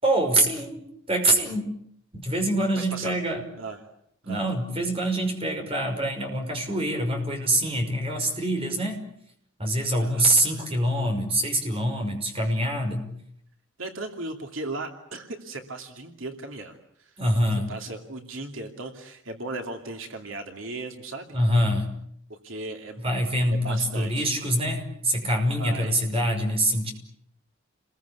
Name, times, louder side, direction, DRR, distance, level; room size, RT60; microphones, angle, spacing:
voice 1, 0.0-1.8 2.1-3.5 4.3-9.0 9.6-13.0 17.2-17.7 21.3-21.9 23.0-26.9, right 1 dB, 30° right, 4 dB, 5.8 m, -25 dB
voice 2, 2.8-3.2 3.6-3.8 4.2-4.5 10.0-10.6 13.8-17.1 17.5-21.4 22.3-23.0 23.5-24.3 25.6-26.0, right 2 dB, 75° right, 4 dB, 2.7 m, -37 dB
29.5 x 22.0 x 8.5 m, 0.72 s
head